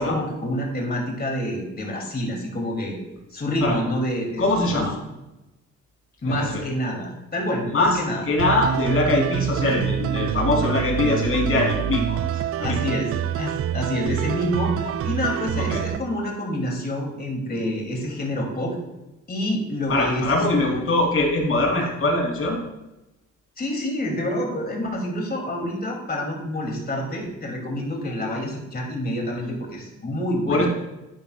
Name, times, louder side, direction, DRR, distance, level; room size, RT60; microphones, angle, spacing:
voice 1, 0.0-3.0 3.3-4.8 5.1-5.2 6.2-8.2 12.6-13.1 13.4-18.7 19.3-20.4 23.6-30.7, equal, 30° left, 0 dB, 2.9 m, -27 dB
voice 2, 4.4-5.0 6.2-6.6 7.7-8.0 8.3-12.8 15.5-15.8 19.9-22.6 30.5-30.7, left 2 dB, 45° left, 0 dB, 3.5 m, -22 dB
sound 1, 8.4-16.0, right 10 dB, 50° right, 0.4 m, -26 dB
12.0 x 9.1 x 2.4 m, 0.98 s
cardioid pair, 90°, 30 cm